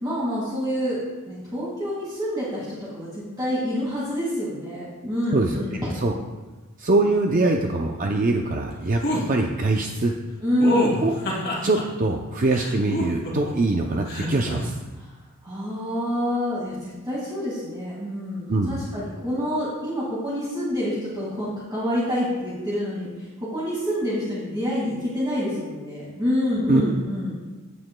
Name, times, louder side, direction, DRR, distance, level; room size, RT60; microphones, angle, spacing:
voice 1, 0.0-1.0 1.3-5.9 10.4-11.0 15.0-15.1 15.4-27.4, equal, 20° right, -8 dB, 2.0 m, -27 dB
voice 2, 5.3-5.6 6.0-6.1 6.8-9.0 9.3-10.2 11.0-11.2 11.6-14.7 18.5-18.8 26.7-27.0, right 2 dB, 35° right, 2 dB, 0.5 m, -23 dB
sound 1, 9.0-9.2 10.6-11.8 12.5-13.5 14.1-14.6, equal, 50° left, 2.4 m, -26 dB
16.0 x 7.6 x 2.2 m, 1.2 s
head